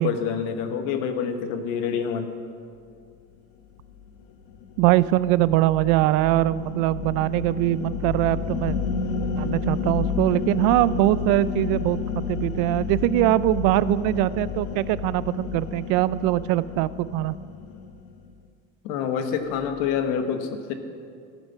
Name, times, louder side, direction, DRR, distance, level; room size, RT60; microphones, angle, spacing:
voice 1, 0.0-2.3 18.8-20.7, left 7 dB, 90° left, 7 dB, 1.3 m, -27 dB
sound 1, 3.8-18.3, left 5 dB, 70° left, 1.0 m, -31 dB
voice 2, 4.8-8.8 9.4-17.3, right 16 dB, 80° right, 17 dB, 0.5 m, -22 dB
14.0 x 9.0 x 5.6 m, 2.3 s
cardioid pair, 160°, 31 cm